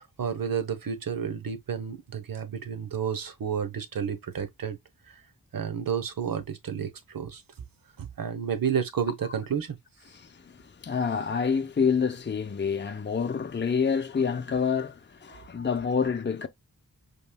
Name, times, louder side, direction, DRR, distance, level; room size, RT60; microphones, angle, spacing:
voice 1, 0.0-4.8 5.1-5.2 5.5-7.4 8.0-9.8 15.4-15.5, right 7 dB, 65° right, 1.0 m, -31 dB
voice 2, 10.1-16.5, left 6 dB, 30° left, 0.6 m, -28 dB
5.3 x 3.1 x 2.2 m
cardioid pair, 60°, 36 cm